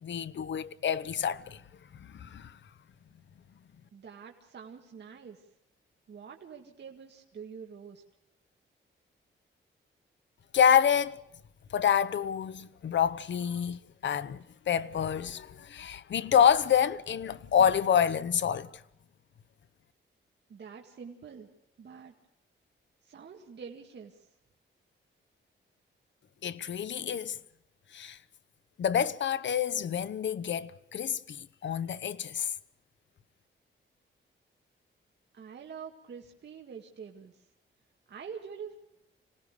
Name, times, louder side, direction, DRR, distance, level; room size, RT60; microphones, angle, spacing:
voice 1, 0.0-1.6 2.0-2.6 10.5-11.2 11.7-18.7 26.4-27.4 27.9-28.2 28.8-32.5, left 8 dB, 65° left, 0.9 m, -27 dB
voice 2, 3.9-5.5 6.1-8.0 20.5-21.5 21.8-22.1 23.0-24.3 35.3-37.4 38.1-38.8, right 6 dB, 55° right, 2.1 m, -46 dB
26.5 x 18.0 x 6.7 m
wide cardioid pair, 120°, 21 cm